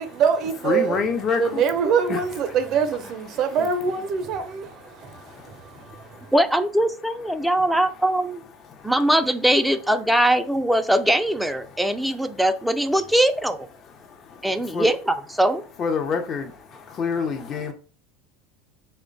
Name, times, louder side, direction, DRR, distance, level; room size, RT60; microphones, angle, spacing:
voice 1, 0.0-1.0 1.4-6.3, right 6 dB, 50° right, 0.6 m, -24 dB
voice 2, 0.6-1.6 2.1-2.2 3.6-3.7 4.8-6.3 7.2-7.7 8.6-8.9 10.1-10.3 11.6-12.4 12.9-13.0 13.8-14.9 15.8-17.7, left 5 dB, 40° left, 0.6 m, -30 dB
voice 3, 6.3-8.4 8.8-13.7 14.4-15.6, right 1 dB, ahead, 0.4 m, -21 dB
3.1 x 2.2 x 3.8 m
hypercardioid pair, 90°, 0 cm